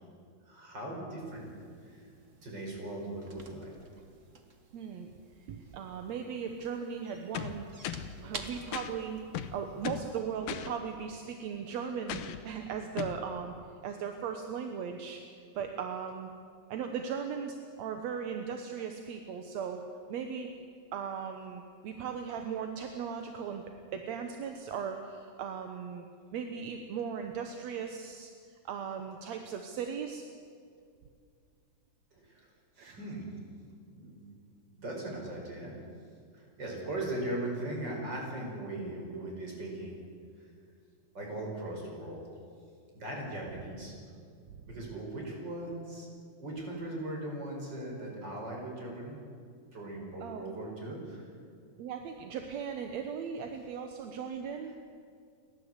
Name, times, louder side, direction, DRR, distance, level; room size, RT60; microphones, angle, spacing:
voice 1, 0.5-1.5 1.9-2.1 2.4-3.7 32.1-32.5 32.8-33.3 33.9-34.2 34.7-35.8 36.3-40.0 41.1-42.2 42.9-43.9 44.7-46.1 46.4-49.2 49.7-51.3, right 1 dB, 30° right, -1 dB, 5.6 m, -39 dB
sound 1, 1.3-10.2, right 3 dB, 80° right, 0.6 m, -51 dB
voice 2, 4.7-5.1 5.5-7.6 8.2-9.2 9.5-13.5 13.8-15.2 15.6-16.3 16.7-19.8 20.1-20.5 20.9-23.6 23.9-26.1 26.3-28.3 28.7-30.2 32.8-33.0 44.5-44.6 44.9-45.0 50.2-50.4 51.8-54.7, right 7 dB, 65° right, 5 dB, 1.9 m, -38 dB
sound 2, 7.3-8.2 8.7-8.9 9.3-10.1 10.5-10.7 12.1-12.4 13.0-13.2, left 10 dB, 75° left, 2.6 m, -37 dB
29.5 x 12.5 x 8.1 m, 2.2 s
omnidirectional pair, 4.0 m